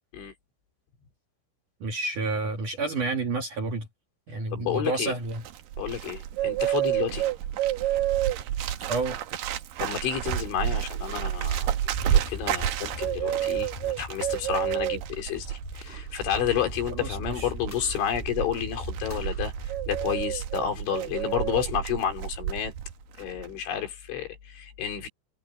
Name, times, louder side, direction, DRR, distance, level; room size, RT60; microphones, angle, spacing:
voice 1, 1.8-3.9 4.3-5.4 8.9-9.2 17.0-17.5, right 3 dB, 50° right, 2.9 m, -30 dB
voice 2, 4.5-5.1 5.8-7.3 9.8-11.8 12.0-19.5 19.9-22.7 23.2-25.1, left 9 dB, 65° left, 5.6 m, -30 dB
Bird, 5.1-22.9 23.2-23.5, right 11 dB, 80° right, 2.0 m, -30 dB
sound 1, 11.9-21.1, left 2 dB, 10° left, 3.9 m, -41 dB
omnidirectional pair, 5.9 m